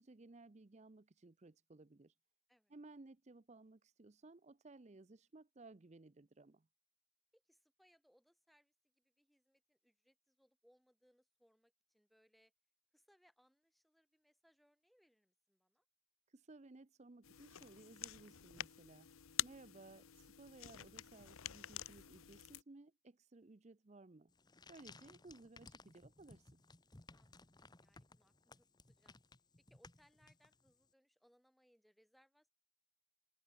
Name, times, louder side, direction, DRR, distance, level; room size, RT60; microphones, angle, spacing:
voice 1, 0.0-2.2 2.7-6.7 16.3-19.1 19.4-24.3 24.7-26.6, right 2 dB, 35° right, 0.6 m, -59 dB
voice 2, 7.3-12.5 12.9-15.8 27.1-29.2 29.7-32.5, equal, ahead, 2.9 m, -74 dB
sound 1, 17.2-22.6, left 13 dB, 85° left, 0.9 m, -47 dB
sound 2, 24.3-30.9, left 3 dB, 20° left, 1.2 m, -61 dB
open air
head